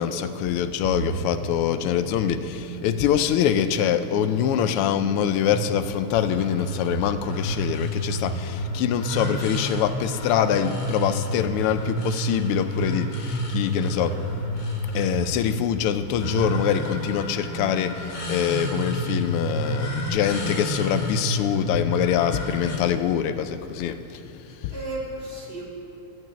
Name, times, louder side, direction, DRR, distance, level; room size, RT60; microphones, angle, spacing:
voice 1, 0.0-14.2 14.8-24.7, left 9 dB, 90° left, 11 dB, 1.5 m, -24 dB
sound 1, 0.8-6.8, right 7 dB, 75° right, 1.3 m, -36 dB
sound 2, 6.1-22.8, equal, 70° left, 2.4 m, -29 dB
voice 2, 13.9-14.2 24.7-25.6, right 1 dB, 25° right, -4 dB, 2.1 m, -35 dB
12.0 x 6.3 x 8.6 m, 2.7 s
omnidirectional pair, 2.4 m